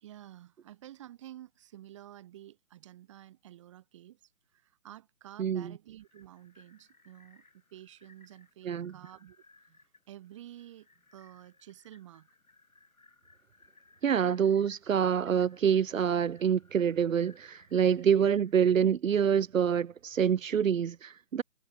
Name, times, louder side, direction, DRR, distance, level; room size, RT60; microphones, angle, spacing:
voice 1, 0.0-12.3 17.9-18.2, right 13 dB, 20° right, 1.5 m, -51 dB
voice 2, 5.4-5.7 8.6-8.9 14.0-21.4, right 8 dB, 70° right, 0.7 m, -26 dB
sound 1, 6.0-18.6, left 3 dB, 85° left, 7.6 m, -64 dB
figure-of-eight pair, 150°, 41 cm